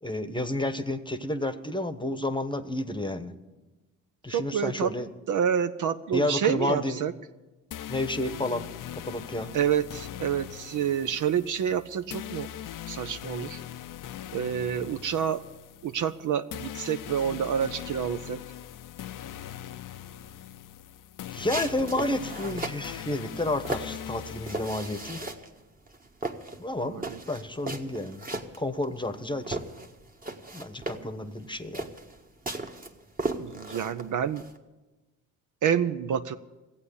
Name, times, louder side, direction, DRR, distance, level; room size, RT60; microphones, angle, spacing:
voice 1, 0.0-3.3 4.2-5.1 6.1-7.0 7.9-8.7 9.0-9.5 21.3-25.2 26.6-27.0 27.3-28.2 28.6-29.6 30.5-31.9, left 1 dB, 10° left, 11 dB, 1.1 m, -30 dB
voice 2, 4.3-4.9 5.3-7.1 9.5-12.5 12.9-13.6 14.3-15.4 15.8-18.4 26.9-27.2 33.4-34.4 35.6-36.4, right 8 dB, 50° right, 11 dB, 0.7 m, -28 dB
sound 1, 7.7-25.3, left 11 dB, 50° left, 0.7 m, -41 dB
sound 2, 21.4-22.9 23.3-25.6 25.9-29.2 29.4-34.6, right 2 dB, 20° right, 1.5 m, -36 dB
15.0 x 8.4 x 10.0 m, 1.1 s
hypercardioid pair, 55°, 40 cm